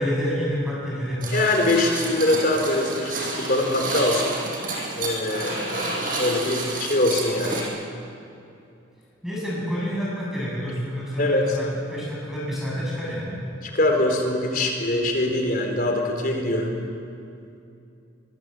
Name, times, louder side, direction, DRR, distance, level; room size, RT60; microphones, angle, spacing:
voice 1, 0.0-1.3 9.2-13.3, equal, ahead, -6 dB, 7.9 m, -28 dB
sound 1, 1.2-7.6, right 2 dB, 45° right, 5.6 m, -30 dB
voice 2, 1.3-4.3 4.9-7.7 11.2-11.4 13.6-16.8, left 1 dB, 45° left, 2 dB, 4.3 m, -23 dB
24.0 x 23.5 x 8.0 m, 2.6 s
head